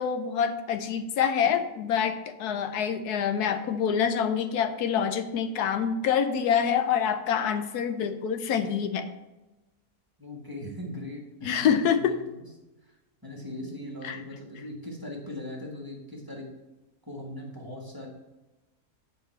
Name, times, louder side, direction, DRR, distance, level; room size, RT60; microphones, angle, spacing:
voice 1, 0.0-9.0 11.4-12.1 14.0-14.2, left 7 dB, 85° left, 8 dB, 1.2 m, -26 dB
voice 2, 10.2-12.5 12.8-12.9 13.2-16.5 17.1-18.1, left 1 dB, 15° right, -1 dB, 1.3 m, -40 dB
8.7 x 5.0 x 4.4 m, 1.1 s
omnidirectional pair, 1.6 m